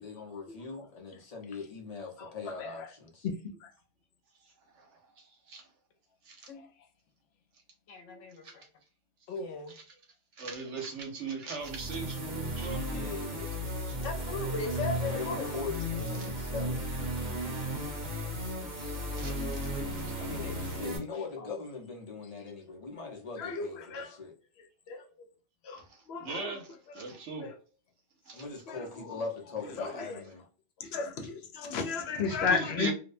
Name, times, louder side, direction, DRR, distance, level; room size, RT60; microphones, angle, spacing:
voice 1, 0.0-3.3 12.8-13.4 15.1-16.8 20.2-24.3 28.3-30.4, left 4 dB, 40° left, 0.7 m, -41 dB
voice 2, 7.9-8.6 9.3-9.7 14.0-15.5 21.4-21.6 32.5-32.9, left 4 dB, 85° left, 1.0 m, -37 dB
voice 3, 10.4-13.0 13.9-14.0 16.2-16.3 18.8-19.4 25.7-25.8 26.2-26.7 26.9-27.5 28.3-28.4 32.2-32.9, right 4 dB, 70° right, 1.1 m, -38 dB
sound 1, 11.6-21.0, equal, 40° right, 1.0 m, -35 dB
voice 4, 23.4-24.2 24.9-25.0 25.6-25.8 26.1-26.6 26.9-27.0 27.4-27.5 28.7-28.8 29.8-30.2 30.8-32.9, left 5 dB, 65° left, 0.8 m, -33 dB
2.6 x 2.1 x 2.5 m
omnidirectional pair, 1.3 m